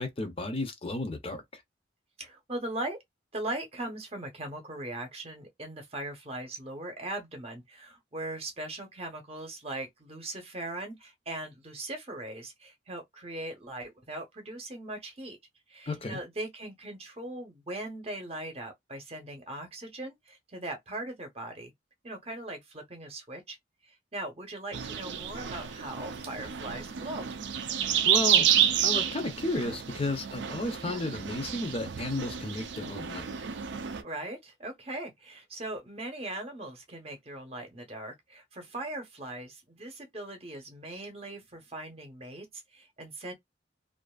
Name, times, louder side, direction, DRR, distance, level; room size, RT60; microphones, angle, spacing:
voice 1, 0.0-1.6 15.9-16.2 28.1-28.5 28.8-33.2, left 2 dB, 30° left, 0.5 m, -33 dB
voice 2, 2.2-3.0 3.3-15.4 15.7-21.7 22.0-23.6 23.8-27.3 30.9-31.0 34.0-43.3, right 1 dB, 30° right, 0.8 m, -39 dB
sound 1, 24.7-34.0, right 9 dB, 65° right, 0.4 m, -29 dB
2.5 x 2.5 x 2.3 m
head